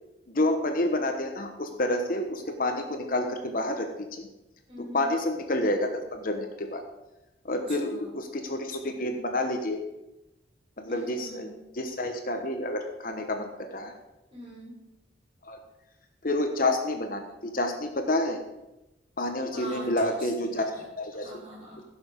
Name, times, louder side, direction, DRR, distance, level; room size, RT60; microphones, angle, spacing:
voice 1, 0.3-3.9 4.2-4.3 4.9-6.8 7.4-9.8 10.8-13.9 15.4-15.6 16.2-18.4 19.2-20.6 21.0-21.3, left 1 dB, 50° left, 5 dB, 1.1 m, -29 dB
voice 2, 4.7-5.1 7.5-8.1 10.9-11.5 14.3-14.8 19.5-20.9 21.1-21.8, equal, 30° right, -4 dB, 4.6 m, -44 dB
15.5 x 6.6 x 5.2 m, 0.96 s
head